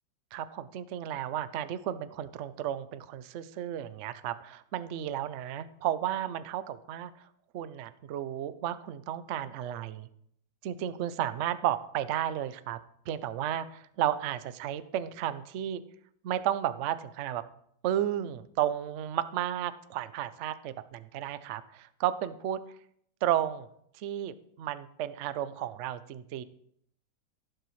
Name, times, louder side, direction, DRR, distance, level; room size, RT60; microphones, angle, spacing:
voice 1, 0.3-7.1 7.5-10.1 10.6-12.8 13.1-15.8 16.2-17.4 17.8-22.6 23.2-23.7 24.0-26.4, right 11 dB, 75° right, 13 dB, 0.6 m, -33 dB
16.0 x 7.6 x 3.2 m, 0.69 s
omnidirectional pair, 2.0 m